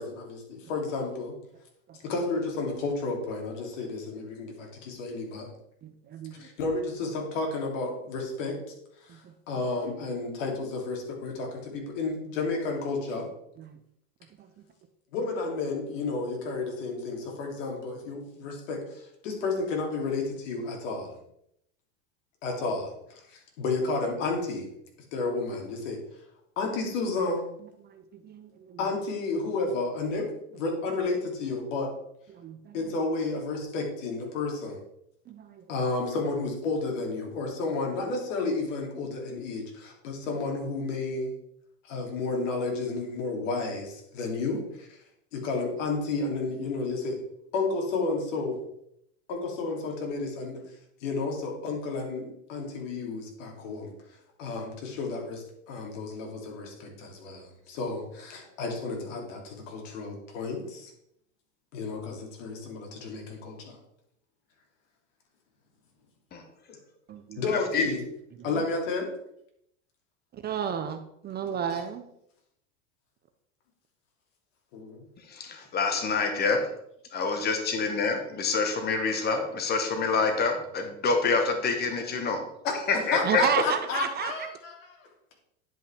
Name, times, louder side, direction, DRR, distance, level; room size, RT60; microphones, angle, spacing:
voice 1, 0.0-1.3 2.0-5.5 6.3-8.6 9.0-13.3 15.1-21.2 22.4-24.7 25.1-26.0 26.6-27.5 28.8-31.9 32.7-34.8 35.7-41.3 41.8-45.0 45.3-47.2 47.5-48.6 49.3-50.6 51.0-53.9 54.4-60.9 61.7-63.8 66.7-66.8 67.4-68.0 68.4-69.1 74.7-75.0 82.6-85.1, left 3 dB, 70° left, 1 dB, 2.7 m, -32 dB
voice 2, 5.8-6.4 9.1-9.3 13.6-13.8 14.4-14.5 27.8-28.8 32.3-32.8 35.3-35.7 67.1-67.4 68.4-68.6 70.3-72.0 78.1-78.2 83.2-84.3, right 8 dB, 25° right, 8 dB, 0.6 m, -33 dB
voice 3, 75.3-76.6 77.1-82.4 82.9-83.4, left 4 dB, 25° left, 5 dB, 1.3 m, -26 dB
10.5 x 5.3 x 3.5 m, 0.75 s
supercardioid pair, 120°, 39 cm